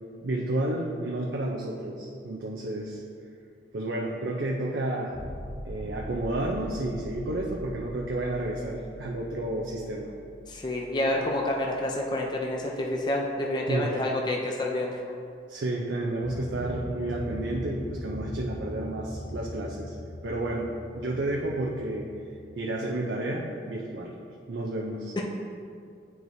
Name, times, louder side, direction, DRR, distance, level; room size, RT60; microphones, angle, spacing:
voice 1, 0.2-3.0 3.7-5.1 5.6-10.1 13.7-14.0 15.5-19.9 20.2-22.1 22.5-24.1 24.5-25.1, right 1 dB, 85° right, -2 dB, 0.6 m, -31 dB
sound 1, 5.1-12.9 16.2-22.3, equal, 85° left, 1.2 m, -41 dB
voice 2, 10.5-15.0 25.2-25.3, left 1 dB, 25° left, -1 dB, 0.4 m, -28 dB
9.2 x 4.6 x 2.7 m, 2.3 s
head